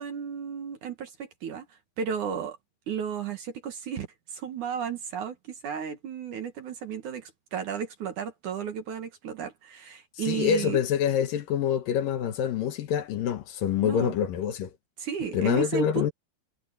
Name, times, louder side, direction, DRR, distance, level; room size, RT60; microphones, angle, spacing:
voice 1, 0.0-1.7 2.0-2.6 2.9-4.1 4.3-5.4 5.6-10.8 13.8-14.1 15.0-16.1, right 7 dB, 60° right, 2.3 m, -33 dB
voice 2, 10.2-14.7 15.3-16.1, left 9 dB, 65° left, 2.4 m, -26 dB
omnidirectional pair, 5.2 m